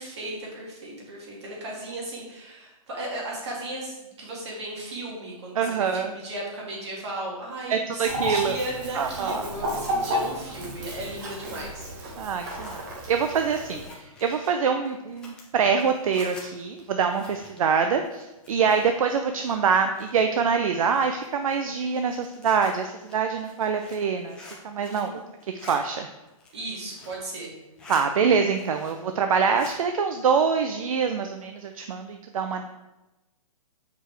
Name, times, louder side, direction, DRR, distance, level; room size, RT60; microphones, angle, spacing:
voice 1, 0.0-12.1 24.8-25.2 26.5-27.5, right 1 dB, 50° right, -2 dB, 2.2 m, -36 dB
voice 2, 5.5-6.1 7.7-8.6 8.9-9.4 12.2-24.4 24.6-25.1 25.6-26.1 27.9-32.6, right 6 dB, 70° right, 6 dB, 0.5 m, -25 dB
Chicken rooster, 8.0-13.9, equal, 35° right, 1.1 m, -32 dB
Zipper (clothing), 10.8-19.1 19.4-20.4 20.8-25.1 25.4-25.8 26.2-27.2 27.6-28.0 28.4-29.1 29.4-29.8, left 2 dB, 5° left, 0.5 m, -48 dB
6.7 x 4.7 x 3.3 m, 1.0 s
hypercardioid pair, 165°, 19 cm